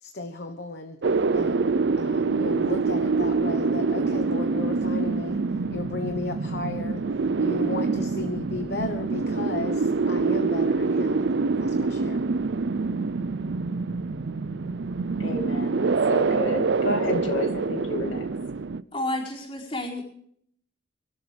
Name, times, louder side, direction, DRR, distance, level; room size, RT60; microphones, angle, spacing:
voice 1, 0.0-1.0 1.3-5.4 5.7-7.0 7.4-11.3 11.6-12.3, left 3 dB, 55° left, 5 dB, 1.2 m, -35 dB
sound 1, 1.0-18.8, right 4 dB, 65° right, 0.5 m, -25 dB
voice 2, 15.2-18.3, left 1 dB, 75° left, 3 dB, 2.5 m, -30 dB
voice 3, 18.9-20.0, left 1 dB, 30° left, -2 dB, 4.5 m, -30 dB
24.5 x 13.0 x 3.4 m, 0.65 s
head